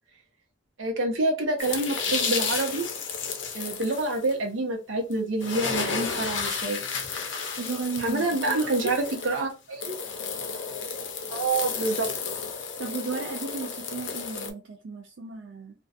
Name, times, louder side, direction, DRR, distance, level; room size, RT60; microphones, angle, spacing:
voice 1, 0.8-2.9 3.5-6.8 8.0-9.9 11.3-12.1, right 2 dB, 85° right, 0.8 m, -27 dB
sound 1, 1.6-4.3 5.1-5.2 5.4-14.5, left 5 dB, 75° left, 0.5 m, -32 dB
voice 2, 7.6-8.9 12.8-15.7, right 4 dB, 70° right, 0.4 m, -34 dB
2.5 x 2.2 x 2.4 m
head